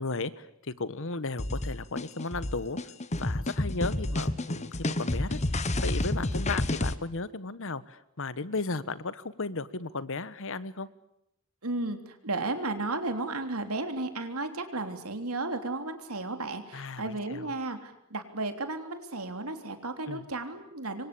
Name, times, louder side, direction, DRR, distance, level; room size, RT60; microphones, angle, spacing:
voice 1, 0.0-2.9 3.2-10.9 16.7-17.4 20.1-20.3, left 3 dB, 65° left, 16 dB, 1.3 m, -35 dB
sound 1, 1.4-6.9, left 1 dB, 30° left, 1.2 m, -30 dB
voice 2, 11.6-21.1, right 2 dB, 80° right, 7 dB, 3.5 m, -34 dB
27.5 x 24.0 x 8.6 m, 0.81 s
head